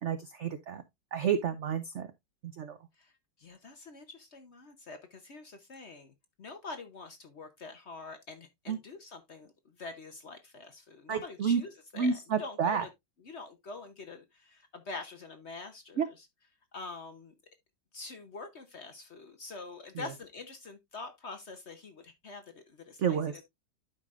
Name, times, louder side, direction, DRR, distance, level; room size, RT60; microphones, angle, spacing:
voice 1, 0.0-0.8 1.1-2.1 2.4-2.8 8.7-8.8 11.1-11.6 12.0-12.8 16.0-16.1 23.0-23.4, right 7 dB, 70° right, 0.6 m, -30 dB
voice 2, 3.4-6.1 6.4-9.5 9.8-12.9 13.2-16.3 16.7-17.3 17.9-23.4, left 3 dB, 50° left, 0.9 m, -45 dB
11.5 x 5.0 x 2.4 m
omnidirectional pair, 2.0 m